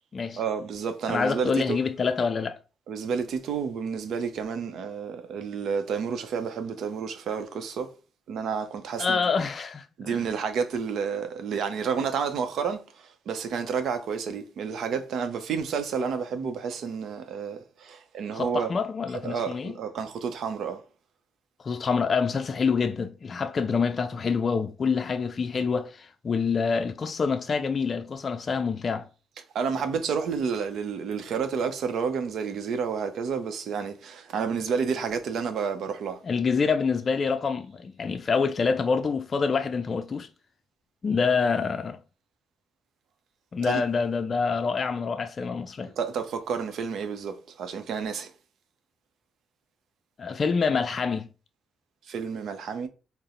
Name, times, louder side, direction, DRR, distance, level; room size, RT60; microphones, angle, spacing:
voice 1, 0.4-1.8 2.9-7.9 8.3-9.2 10.0-18.7 19.2-20.8 29.5-36.2 43.7-43.8 46.0-48.3 52.1-52.9, right 6 dB, 70° right, 0.6 m, -30 dB
voice 2, 1.1-2.6 9.0-10.2 18.3-19.7 21.6-29.0 36.2-40.3 41.0-42.0 43.5-45.9 50.2-51.3, left 5 dB, 50° left, 0.4 m, -26 dB
4.0 x 2.0 x 3.6 m
hypercardioid pair, 45°, 0 cm